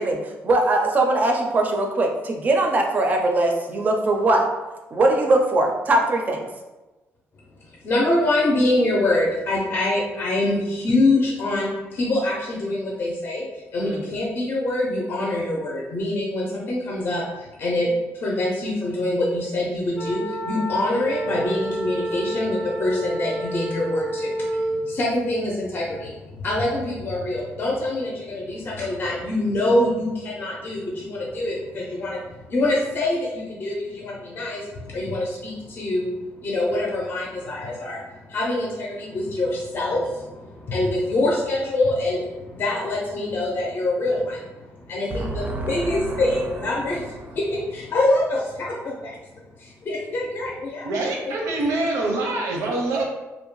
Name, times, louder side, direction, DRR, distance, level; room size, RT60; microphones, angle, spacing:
voice 1, 0.0-4.4 4.9-6.5 13.8-14.0 45.1-46.2, right 2 dB, 30° right, 2 dB, 0.4 m, -21 dB
voice 2, 7.6-49.2 49.6-50.9 51.3-51.4, left 1 dB, 40° left, -3 dB, 0.5 m, -25 dB
sound 1, 19.9-24.9, right 1 dB, 85° left, 0.6 m, -29 dB
voice 3, 50.8-53.1, right 2 dB, 85° right, 0 dB, 0.6 m, -25 dB
2.6 x 2.1 x 3.0 m, 1.1 s
cardioid pair, 150°, 5 cm